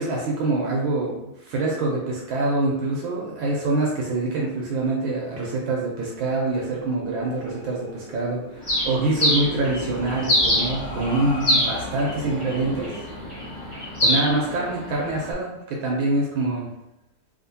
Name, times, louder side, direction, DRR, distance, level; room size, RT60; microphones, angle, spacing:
voice 1, 0.0-13.1 13.8-16.7, right 2 dB, 75° right, -3 dB, 1.4 m, -25 dB
sound 1, 6.1-15.1, left 1 dB, 65° left, 1.4 m, -38 dB
Bird, 8.6-15.3, left 1 dB, 30° left, 0.5 m, -26 dB
3.5 x 2.7 x 2.7 m, 0.87 s
omnidirectional pair, 2.3 m